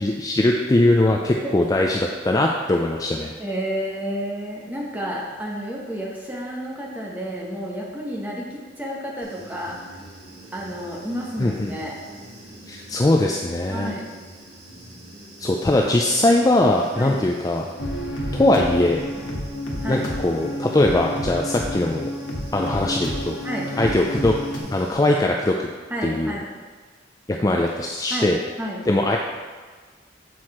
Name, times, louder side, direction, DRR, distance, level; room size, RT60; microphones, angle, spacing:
voice 1, 0.0-3.3 11.4-11.7 12.7-13.9 15.4-17.7 18.3-19.0 19.9-22.1 22.5-23.4 23.8-24.3 24.7-25.5 26.0-26.4 27.3-28.4 28.9-29.2, left 1 dB, 20° left, 0 dB, 0.4 m, -20 dB
voice 2, 3.4-9.8 10.5-11.9 13.7-14.1 17.0-17.2 19.8-20.1 23.4-24.0 25.9-26.5 28.1-28.8, equal, 10° right, -4 dB, 1.2 m, -31 dB
Human voice / Buzz, 9.2-24.9, right 1 dB, 60° right, 1.8 m, -44 dB
sound 1, 17.8-24.6, equal, 85° left, 1.4 m, -30 dB
7.8 x 4.7 x 4.2 m, 1.4 s
head